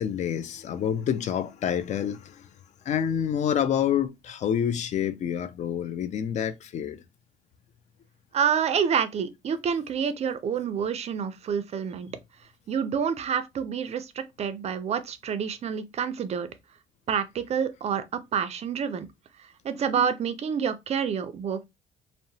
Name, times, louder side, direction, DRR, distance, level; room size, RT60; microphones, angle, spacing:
voice 1, 0.0-2.5 2.9-7.0, left 9 dB, 45° left, 0.4 m, -28 dB
voice 2, 8.3-12.1 12.7-16.5 17.1-19.1 19.6-21.6, right 7 dB, 40° right, 0.4 m, -28 dB
2.8 x 2.0 x 2.6 m
cardioid pair, 110°, 17 cm